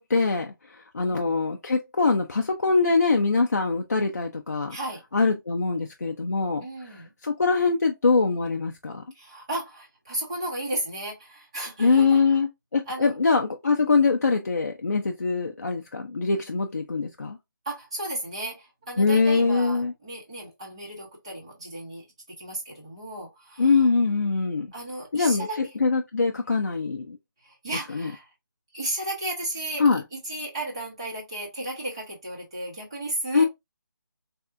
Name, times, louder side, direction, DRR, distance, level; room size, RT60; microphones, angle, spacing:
voice 1, 0.0-4.8 5.1-6.7 6.9-9.0 11.8-17.4 19.0-19.9 23.6-24.7 25.1-27.2 27.9-28.1 29.8-30.0 33.3-33.4, left 4 dB, 45° left, 0.4 m, -23 dB
voice 2, 1.0-1.4 4.7-5.0 6.6-7.1 9.1-12.3 12.9-13.2 17.6-22.0 22.4-23.7 24.7-25.7 27.4-28.3 28.7-29.8 30.1-33.5, right 1 dB, 15° right, 0.9 m, -34 dB
3.4 x 2.3 x 2.5 m
figure-of-eight pair, 175°, 11 cm